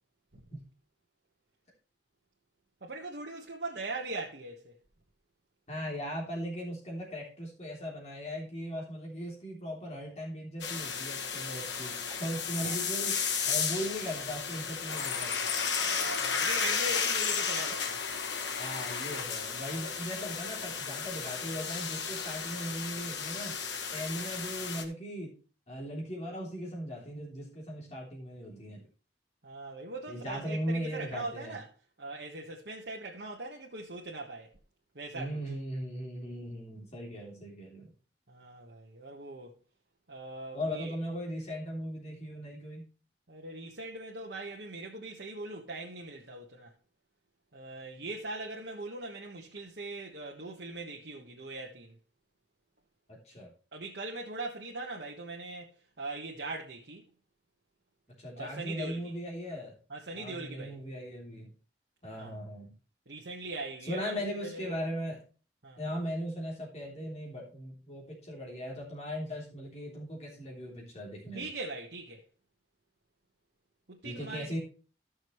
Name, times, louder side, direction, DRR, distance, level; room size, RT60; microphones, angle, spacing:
voice 1, 2.8-4.7 12.6-12.8 15.9-18.0 29.4-31.7 32.0-34.5 34.9-35.4 38.3-39.6 40.1-40.9 43.3-46.7 47.5-51.9 53.7-55.7 56.0-57.0 58.4-59.1 59.9-60.7 62.2-62.3 63.1-64.7 65.6-65.8 71.3-72.2 73.9-74.5, right 2 dB, 70° right, 1.4 m, -41 dB
voice 2, 5.7-13.2 13.4-15.5 18.6-23.6 23.9-25.3 25.7-28.9 30.1-31.6 35.1-37.9 40.5-42.9 53.1-53.5 58.2-59.8 60.1-61.5 62.0-62.7 63.8-65.2 65.8-71.5 74.0-74.6, equal, 40° left, 3.4 m, -38 dB
sound 1, 10.6-24.8, left 6 dB, 90° left, 1.4 m, -33 dB
14.0 x 6.3 x 3.2 m
head